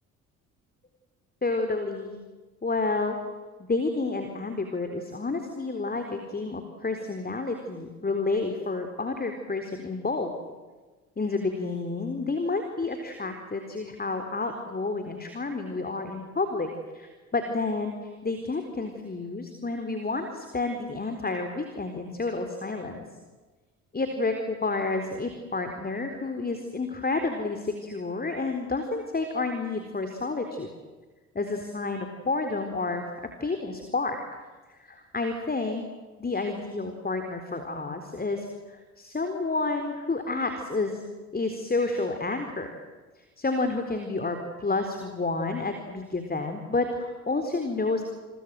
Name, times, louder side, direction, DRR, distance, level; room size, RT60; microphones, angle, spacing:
voice 1, 1.4-2.2 2.6-3.2 3.6-10.3 11.2-16.7 16.9-17.9 18.2-23.0 23.9-30.7 31.3-33.0 33.4-34.4 34.8-35.8 36.2-41.1 41.3-42.7 43.4-48.0, left 3 dB, 20° left, 6 dB, 4.1 m, -30 dB
29.5 x 23.5 x 7.8 m, 1.3 s
figure-of-eight pair, 50°, 43 cm